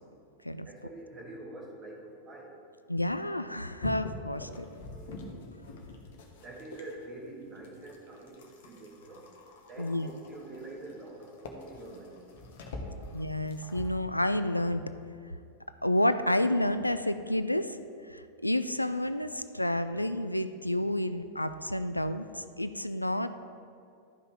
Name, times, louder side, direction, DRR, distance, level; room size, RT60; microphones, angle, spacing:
voice 1, 0.6-2.5 4.3-4.6 4.9-5.4 6.4-9.2 9.7-12.2, right 2 dB, 25° right, -1 dB, 2.2 m, -46 dB
voice 2, 2.9-4.7 9.8-10.1 13.1-14.9 15.8-17.8 18.1-23.3, left 1 dB, 85° left, 11 dB, 0.4 m, -30 dB
sound 1, 3.8-7.1 7.6-14.0, left 2 dB, 55° left, 1.3 m, -45 dB
13.0 x 5.6 x 4.8 m, 2.5 s
figure-of-eight pair, 90°, 0 cm